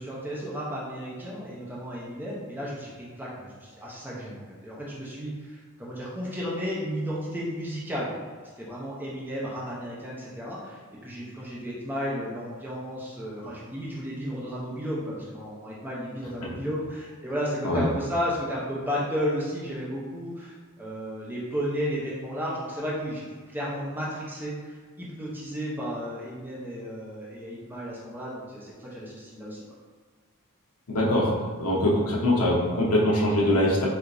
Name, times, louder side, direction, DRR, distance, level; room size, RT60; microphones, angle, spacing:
voice 1, 0.0-8.1 8.4-23.2 23.5-29.6, equal, 10° right, -6 dB, 0.5 m, -33 dB
voice 2, 30.9-31.3 31.6-33.9, left 1 dB, 75° left, -4 dB, 0.9 m, -23 dB
4.6 x 2.5 x 2.5 m, 1.5 s
head